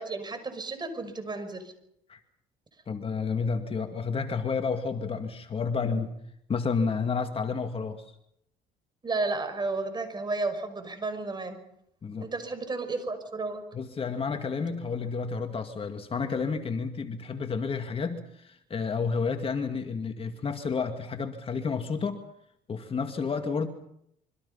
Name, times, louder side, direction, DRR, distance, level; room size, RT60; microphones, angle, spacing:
voice 1, 0.0-1.7 9.0-11.6 12.2-13.6, right 3 dB, 25° right, 8 dB, 6.0 m, -32 dB
voice 2, 2.9-6.1 6.5-8.1 12.0-12.3 13.7-22.2 22.7-23.7, left 5 dB, 35° left, 6 dB, 2.2 m, -30 dB
27.0 x 24.5 x 5.7 m, 0.74 s
cardioid pair, 110°, 17 cm